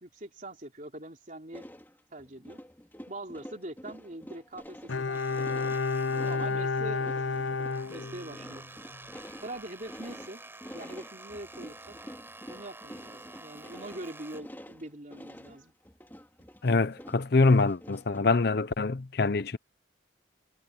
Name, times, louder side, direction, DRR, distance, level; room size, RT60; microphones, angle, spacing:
voice 1, 0.0-1.6 2.1-2.6 3.1-5.6 6.1-7.5 7.9-8.7 9.4-10.4 10.7-12.0 12.5-15.7, right 1 dB, 40° right, 3.3 m, -43 dB
sound 1, 1.5-18.2, equal, 10° left, 3.1 m, -48 dB
Bowed string instrument, 4.9-8.6 8.9-9.0, left 4 dB, 90° left, 1.0 m, -31 dB
sound 2, 5.1-6.8 7.1-14.4, right 2 dB, 10° right, 5.7 m, -49 dB
voice 2, 16.6-19.6, left 3 dB, 55° left, 0.6 m, -24 dB
head